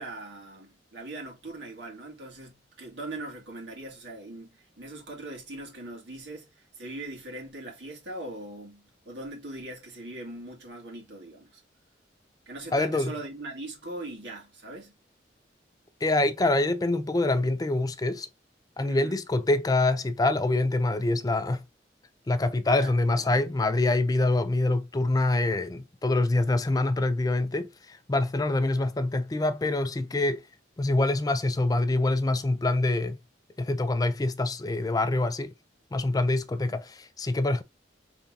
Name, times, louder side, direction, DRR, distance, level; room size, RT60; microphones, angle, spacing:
voice 1, 0.0-11.6 12.5-14.9 18.8-19.2 22.7-23.4 36.7-36.8, right 2 dB, 75° right, 2.2 m, -41 dB
voice 2, 12.7-13.1 16.0-18.3 18.8-21.6 22.3-30.4 30.8-33.2 33.6-35.5 35.9-37.6, left 2 dB, 20° left, 0.4 m, -25 dB
5.3 x 3.5 x 2.7 m
head